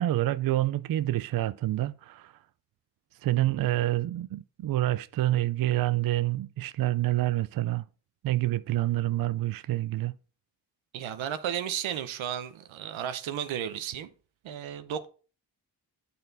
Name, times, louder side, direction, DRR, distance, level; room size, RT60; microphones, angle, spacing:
voice 1, 0.0-2.3 3.2-7.8 8.2-10.1, right 15 dB, 50° right, 0.4 m, -27 dB
voice 2, 10.9-14.1 14.4-15.1, right 9 dB, 80° right, 0.8 m, -33 dB
8.5 x 4.2 x 4.0 m
supercardioid pair, 40°, 47 cm